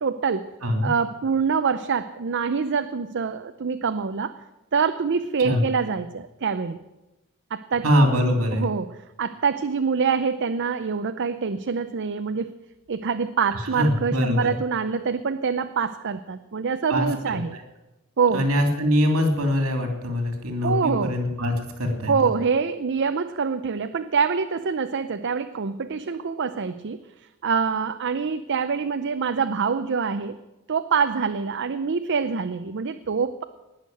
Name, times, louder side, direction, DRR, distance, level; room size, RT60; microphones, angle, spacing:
voice 1, 0.0-0.5 0.8-4.3 4.7-6.8 7.5-7.9 8.5-8.9 9.2-12.6 12.9-17.6 18.2-18.4 20.6-21.2 22.1-27.0 27.4-30.4 30.7-33.4, right 5 dB, 55° right, 9 dB, 0.6 m, -25 dB
voice 2, 7.8-8.7 13.8-14.5 16.9-17.6 18.3-22.1, equal, 70° right, 4 dB, 3.1 m, -23 dB
19.0 x 6.5 x 9.2 m, 1.0 s
head